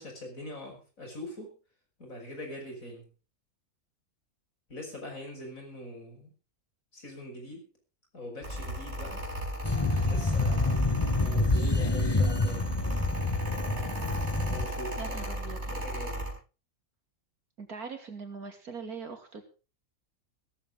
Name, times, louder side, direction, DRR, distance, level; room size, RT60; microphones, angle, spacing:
voice 1, 0.0-1.6 2.0-3.1 4.7-6.3 6.9-7.7 8.1-9.3 10.0-10.9 11.2-12.7 14.4-16.4, left 1 dB, 65° left, 2 dB, 6.0 m, -43 dB
Mechanical fan, 8.4-16.3, right 1 dB, 45° right, 5.6 m, -36 dB
sound 1, 9.6-14.7, left 2 dB, 20° left, 1.0 m, -27 dB
voice 2, 15.0-15.6 17.6-19.4, right 5 dB, 80° right, 6 dB, 3.2 m, -41 dB
16.5 x 14.5 x 3.7 m, 0.34 s
omnidirectional pair, 1.6 m